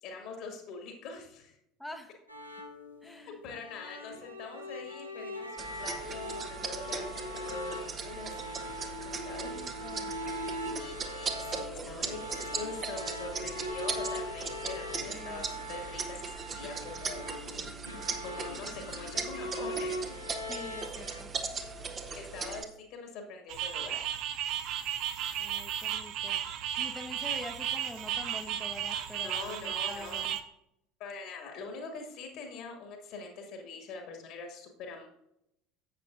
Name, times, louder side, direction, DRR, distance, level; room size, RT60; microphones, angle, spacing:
voice 1, 0.0-1.6 3.0-9.9 10.7-17.7 18.2-20.2 22.1-24.0 29.2-30.3 31.0-35.1, left 4 dB, 55° left, 3 dB, 1.9 m, -44 dB
voice 2, 1.8-2.2 3.0-3.4 9.4-10.1 15.1-15.5 20.4-21.3 25.4-26.4 26.8-30.4, left 1 dB, 5° left, 4 dB, 1.1 m, -45 dB
sound 1, 2.3-21.2, equal, 90° left, 1.0 m, -41 dB
sound 2, 5.6-22.6, right 5 dB, 30° right, 1.1 m, -39 dB
Loud Rhythmic Frogs, 23.5-30.4, right 10 dB, 50° right, 0.6 m, -34 dB
11.0 x 8.1 x 2.6 m, 0.78 s
figure-of-eight pair, 70°, 0 cm